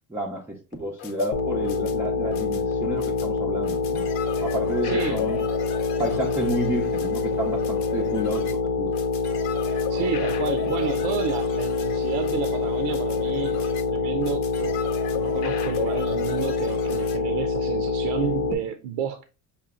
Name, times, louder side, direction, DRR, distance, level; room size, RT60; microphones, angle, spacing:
voice 1, 0.1-4.0 4.4-5.4 6.0-8.9, right 1 dB, 5° right, 0.5 m, -30 dB
sound 1, 0.7-17.2, left 8 dB, 85° left, 1.0 m, -36 dB
sound 2, 1.3-18.5, left 4 dB, 45° left, 0.7 m, -26 dB
voice 2, 4.8-5.3 9.7-14.8 15.1-19.2, right 8 dB, 75° right, 0.6 m, -31 dB
5.6 x 2.2 x 3.5 m
supercardioid pair, 120°, 44 cm